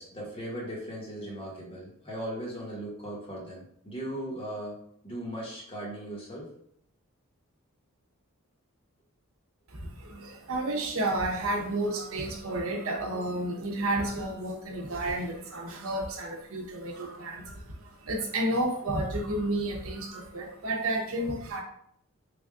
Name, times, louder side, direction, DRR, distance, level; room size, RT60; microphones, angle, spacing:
voice 1, 0.0-4.8 5.0-6.5, right 1 dB, 25° left, -4 dB, 1.1 m, -38 dB
voice 2, 9.7-21.6, right 1 dB, 75° right, 1 dB, 0.8 m, -31 dB
3.4 x 2.3 x 3.6 m, 0.69 s
head